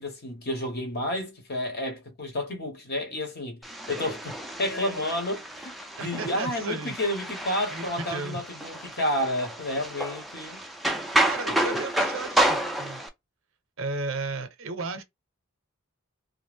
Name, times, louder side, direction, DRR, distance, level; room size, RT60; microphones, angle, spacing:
voice 1, 0.0-10.6 11.1-11.8, left 1 dB, 50° left, 1.0 m, -31 dB
sound 1, 3.6-13.1, right 1 dB, ahead, 0.4 m, -30 dB
voice 2, 6.0-6.9 7.7-8.4 11.2-13.0 13.8-15.0, right 3 dB, 70° right, 0.6 m, -34 dB
2.4 x 2.0 x 3.4 m
head